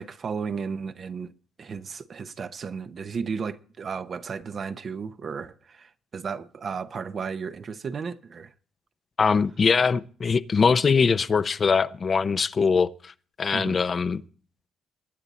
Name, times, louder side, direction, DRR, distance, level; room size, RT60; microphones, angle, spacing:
voice 1, 0.0-1.3 1.6-8.5 13.5-13.8, right 5 dB, 50° right, 0.9 m, -34 dB
voice 2, 9.2-13.1 13.4-14.2, left 5 dB, 40° left, 0.6 m, -22 dB
22.5 x 9.0 x 4.1 m
cardioid pair, 90°, 0 cm